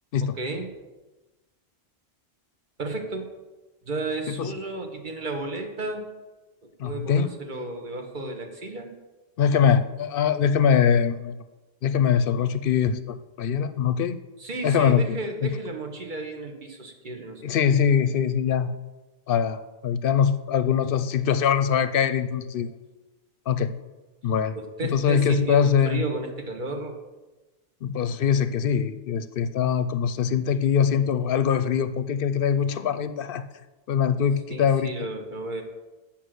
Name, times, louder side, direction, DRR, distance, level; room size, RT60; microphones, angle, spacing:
voice 1, 0.2-0.7 2.8-3.3 3.8-6.0 6.6-8.9 14.4-17.6 24.6-27.0 34.5-35.6, right 2 dB, 50° right, 3 dB, 1.3 m, -33 dB
voice 2, 6.8-7.3 9.4-11.4 11.8-14.2 14.6-15.0 15.4-15.6 17.4-18.7 19.3-22.7 23.5-23.7 24.2-24.6 24.8-26.0 27.8-33.5 33.9-34.9, left 7 dB, 65° left, 12 dB, 0.7 m, -23 dB
8.2 x 5.9 x 6.3 m, 1.1 s
omnidirectional pair, 1.1 m